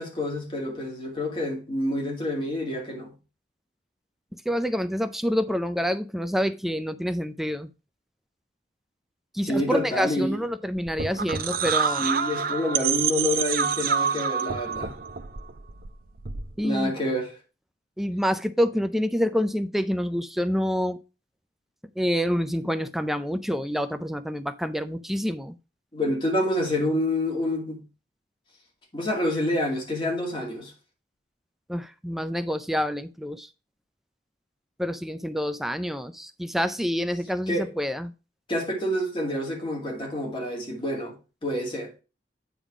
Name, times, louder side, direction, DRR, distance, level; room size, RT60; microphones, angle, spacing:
voice 1, 0.0-3.1 9.4-10.4 12.0-14.9 16.6-17.4 25.9-27.8 28.9-30.7 37.5-37.7 38.5-41.1 41.4-41.9, left 1 dB, 30° left, 2.2 m, -27 dB
voice 2, 4.5-7.7 9.3-12.1 16.6-16.9 18.0-21.0 22.0-25.5 31.7-33.5 34.8-38.1, equal, ahead, 0.3 m, -27 dB
sound 1, 10.8-16.6, right 6 dB, 55° right, 0.6 m, -27 dB
9.0 x 3.5 x 4.8 m
head